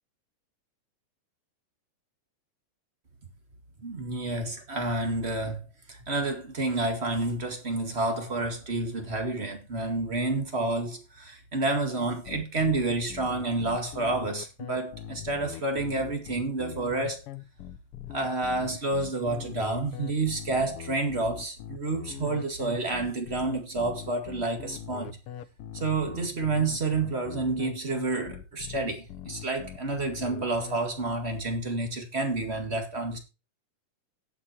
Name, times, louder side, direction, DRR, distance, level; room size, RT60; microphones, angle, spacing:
voice 1, 3.8-17.2 18.1-25.2 25.7-33.2, right 2 dB, 25° right, 1.9 m, -29 dB
sound 1, 12.2-30.8, left 11 dB, 75° left, 1.3 m, -41 dB
17.5 x 6.2 x 2.9 m
omnidirectional pair, 3.4 m